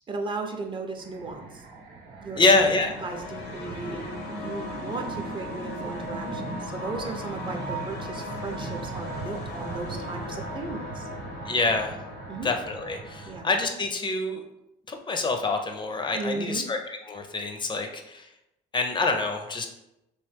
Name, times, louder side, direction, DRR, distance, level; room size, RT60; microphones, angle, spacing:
voice 1, 0.1-1.7 2.2-11.1 12.3-12.5 13.3-13.5 16.2-16.7, right 3 dB, 30° right, 3 dB, 0.5 m, -36 dB
sound 1, 1.0-13.4, right 3 dB, 65° right, 0.8 m, -40 dB
sound 2, 2.4-13.5, left 1 dB, 70° left, 0.7 m, -38 dB
voice 2, 2.4-2.9 11.5-12.0 12.4-14.4 14.9-18.3 18.7-19.7, left 3 dB, 30° left, 5 dB, 0.5 m, -26 dB
3.1 x 3.0 x 3.3 m, 0.87 s
cardioid pair, 110°, 17 cm